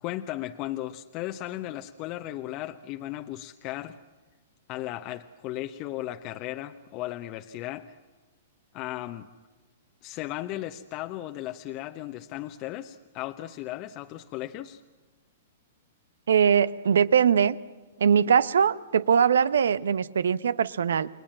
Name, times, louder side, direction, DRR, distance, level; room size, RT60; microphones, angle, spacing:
voice 1, 0.0-4.0 4.7-7.9 8.7-9.3 10.0-14.8, left 15 dB, 40° left, 6 dB, 1.0 m, -36 dB
voice 2, 16.3-17.6 18.0-21.1, right 7 dB, 75° right, 18 dB, 0.9 m, -21 dB
29.5 x 21.5 x 7.5 m, 1.2 s
hypercardioid pair, 115°, 0 cm